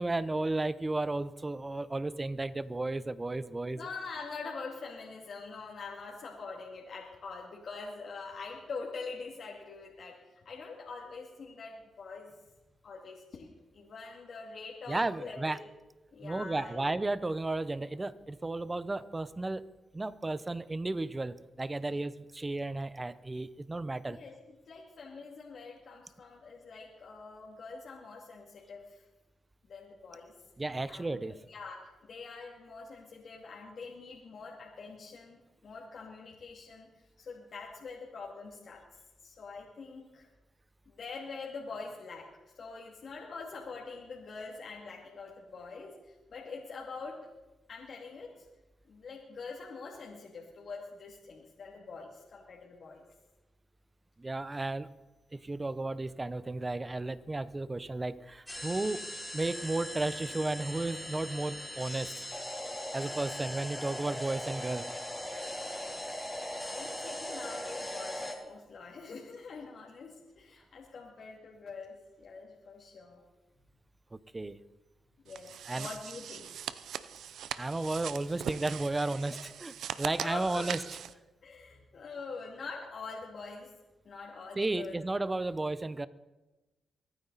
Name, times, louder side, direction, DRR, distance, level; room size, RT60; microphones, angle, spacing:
voice 1, 0.0-3.9 14.9-15.6 16.2-19.6 19.9-24.2 30.6-31.4 54.2-54.9 55.3-59.0 59.3-62.2 62.9-64.9 74.1-74.6 75.6-75.9 77.6-81.0 84.5-86.1, right 2 dB, 25° right, 16 dB, 0.9 m, -33 dB
voice 2, 3.7-12.4 12.8-15.7 16.1-16.9 24.1-29.0 29.7-30.3 30.9-36.9 37.2-38.8 39.2-40.2 40.9-42.3 42.5-47.3 47.7-48.5 48.9-53.0 66.6-73.2 75.2-76.5 79.2-79.4 80.1-80.8 81.4-83.7 84.0-85.0, left 4 dB, 65° left, -2 dB, 2.4 m, -44 dB
sound 1, 58.5-68.4, left 1 dB, 5° left, 3.7 m, -40 dB
Stress Ball, 75.3-81.1, right 9 dB, 80° right, 0.6 m, -41 dB
24.0 x 9.6 x 4.2 m, 1.1 s
supercardioid pair, 55°, 0 cm